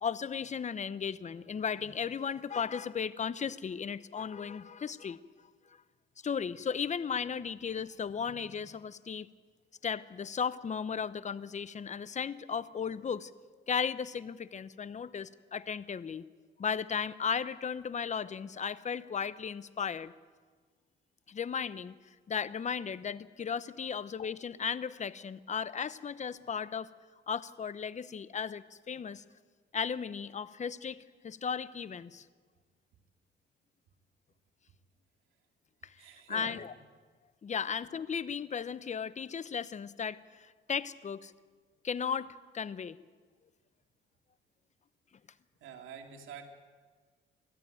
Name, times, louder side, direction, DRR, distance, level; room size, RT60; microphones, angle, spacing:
voice 1, 0.0-5.2 6.2-9.3 9.8-13.3 13.7-16.3 16.6-20.1 21.3-21.9 22.3-26.9 27.3-29.2 29.7-31.0 31.2-32.2 35.8-35.9 36.3-36.7 37.4-41.3 41.8-43.0, left 6 dB, 35° left, 16 dB, 0.9 m, -35 dB
voice 2, 36.0-36.6 37.5-37.6 45.6-46.4, right 7 dB, 85° right, 4 dB, 2.6 m, -47 dB
23.0 x 14.5 x 9.2 m, 1.5 s
cardioid pair, 90°, 20 cm